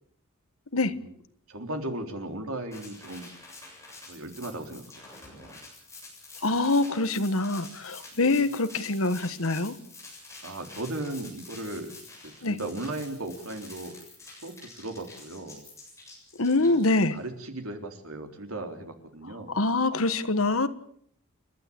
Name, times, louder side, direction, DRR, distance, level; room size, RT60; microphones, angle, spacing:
voice 1, 1.5-3.3 4.1-5.6 8.1-8.4 10.4-11.9 12.2-14.0 14.4-15.6 16.5-16.9 17.1-19.6, right 1 dB, 75° right, 5 dB, 3.6 m, -37 dB
sound 1, 2.7-17.2, left 3 dB, 15° left, 7.6 m, -48 dB
voice 2, 6.4-9.7 12.4-12.6 16.4-17.1 19.5-20.7, left 2 dB, 70° left, 12 dB, 1.4 m, -25 dB
30.0 x 12.5 x 8.6 m, 0.66 s
head